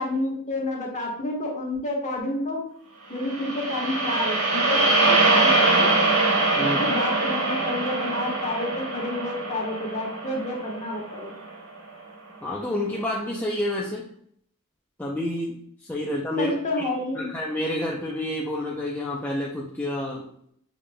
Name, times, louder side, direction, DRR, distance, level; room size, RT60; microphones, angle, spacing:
voice 1, 0.0-2.6 3.1-5.9 6.6-11.3 16.4-17.3, left 2 dB, 35° left, -1 dB, 1.2 m, -29 dB
sound 1, 3.2-11.5, right 2 dB, 75° right, 1.2 m, -23 dB
voice 2, 12.4-14.0 15.0-15.5 15.8-16.5 17.2-20.2, left 1 dB, 10° left, -3 dB, 0.5 m, -28 dB
6.3 x 3.5 x 2.2 m, 0.66 s
head